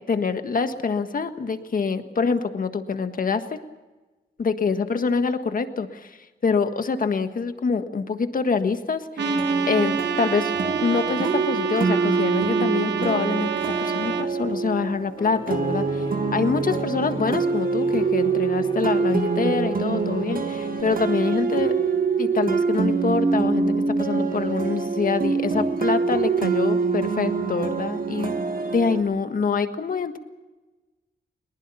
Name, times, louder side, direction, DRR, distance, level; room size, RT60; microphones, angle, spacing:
voice 1, 0.0-3.6 4.4-9.4 9.7-10.5 10.8-13.5 13.8-16.0 16.3-21.8 22.2-28.4 28.7-30.2, left 5 dB, 50° left, 8 dB, 1.6 m, -25 dB
sound 1, 9.2-29.0, right 4 dB, 55° right, 1.9 m, -25 dB
Trumpet, 9.2-14.3, right 9 dB, 90° right, 1.1 m, -29 dB
Piano, 15.2-20.8, left 2 dB, 30° left, 3.9 m, -38 dB
21.5 x 20.0 x 7.0 m, 1.2 s
cardioid pair, 90°, 18 cm